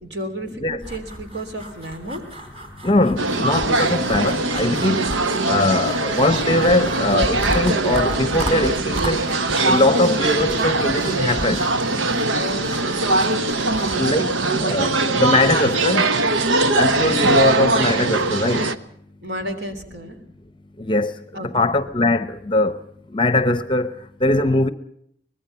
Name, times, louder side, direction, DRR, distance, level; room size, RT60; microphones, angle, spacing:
voice 1, 0.0-2.2 4.7-4.8 9.6-10.0 12.0-14.4 19.2-20.2 21.3-21.7, equal, 60° right, 3.4 m, -33 dB
sound 1, 0.8-14.0, equal, 30° right, 3.7 m, -34 dB
voice 2, 2.8-5.0 5.5-9.2 9.7-11.6 13.9-14.3 14.6-16.1 16.7-18.7 20.8-21.1 21.4-22.8 23.1-24.7, left 2 dB, 25° left, 0.8 m, -21 dB
sound 2, 3.2-18.8, right 2 dB, 90° right, 1.2 m, -21 dB
24.0 x 20.5 x 5.7 m
head